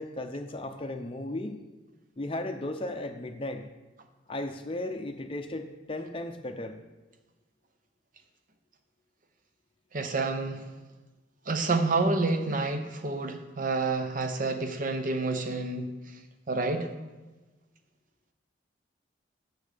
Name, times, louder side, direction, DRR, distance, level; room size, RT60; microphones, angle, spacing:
voice 1, 0.0-1.6 2.2-3.6 4.3-6.8, left 1 dB, 30° left, 6 dB, 0.6 m, -35 dB
voice 2, 9.9-10.6 11.5-15.9 16.5-16.9, right 3 dB, 45° right, 7 dB, 0.8 m, -28 dB
8.6 x 6.3 x 5.0 m, 1.2 s
head